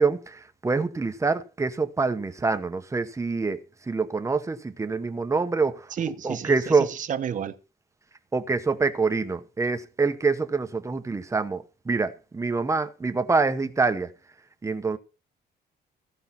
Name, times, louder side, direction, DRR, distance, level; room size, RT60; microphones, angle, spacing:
voice 1, 0.0-3.6 3.9-5.9 6.2-6.9 8.3-14.1 14.6-15.0, right 4 dB, 15° right, 0.9 m, -25 dB
voice 2, 5.9-7.5, right 8 dB, 45° right, 1.1 m, -31 dB
15.5 x 5.4 x 5.8 m
cardioid pair, 155°, 18 cm